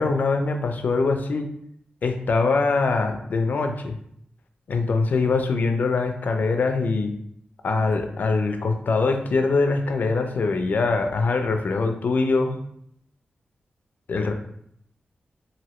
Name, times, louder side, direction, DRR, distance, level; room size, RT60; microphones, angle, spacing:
voice 1, 0.0-1.5 2.0-4.0 4.7-7.1 7.6-12.6 14.1-14.3, left 3 dB, 60° left, 6 dB, 0.4 m, -23 dB
3.0 x 2.6 x 2.9 m, 0.71 s
wide cardioid pair, 145°, 3 cm